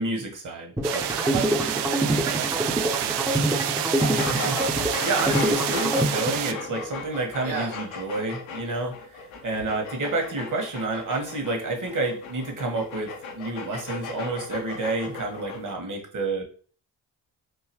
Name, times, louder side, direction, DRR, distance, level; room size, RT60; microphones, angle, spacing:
voice 1, 0.0-1.0 4.1-13.1 13.3-16.4, right 2 dB, 40° right, 2 dB, 1.6 m, -29 dB
sound 1, 0.8-6.8, right 1 dB, 5° right, 0.8 m, -26 dB
sound 2, 0.8-6.5, right 11 dB, 60° right, 0.5 m, -28 dB
voice 2, 1.2-3.6 7.4-7.8, right 6 dB, 75° right, -1 dB, 0.9 m, -35 dB
sound 3, 4.0-15.7, left 4 dB, 75° left, 1.0 m, -36 dB
3.8 x 2.7 x 3.1 m, 0.42 s
hypercardioid pair, 45°, 46 cm